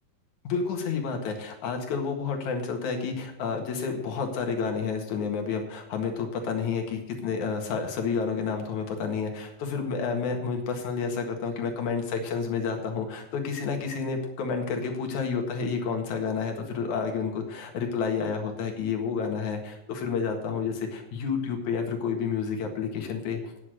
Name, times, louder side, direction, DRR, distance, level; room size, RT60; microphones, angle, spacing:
voice 1, 0.4-23.7, left 5 dB, 65° left, 3 dB, 3.0 m, -30 dB
9.8 x 8.2 x 7.7 m, 0.90 s
omnidirectional pair, 3.9 m